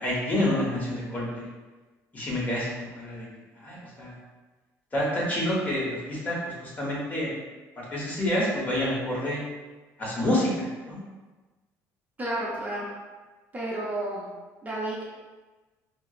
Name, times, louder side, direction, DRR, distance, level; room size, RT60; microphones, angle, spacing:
voice 1, 0.0-1.4 2.1-3.3 3.6-4.1 4.9-7.3 7.8-9.4 10.0-11.0, left 1 dB, 25° left, -5 dB, 1.0 m, -28 dB
voice 2, 12.2-12.9 13.5-14.3 14.6-15.0, right 1 dB, 25° right, -5 dB, 0.7 m, -31 dB
4.3 x 2.0 x 2.4 m, 1.3 s
cardioid pair, 115°, 7 cm